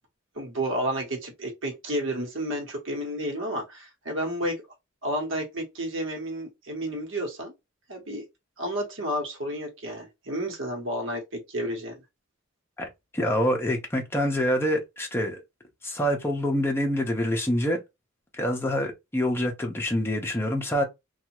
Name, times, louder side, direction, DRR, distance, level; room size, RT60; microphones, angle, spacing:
voice 1, 0.3-4.6 5.0-7.5 7.9-8.2 8.6-12.0, right 1 dB, 65° right, 1.1 m, -31 dB
voice 2, 13.1-15.4 15.8-17.8 18.3-20.8, equal, 10° left, 0.7 m, -26 dB
2.7 x 2.3 x 2.9 m
head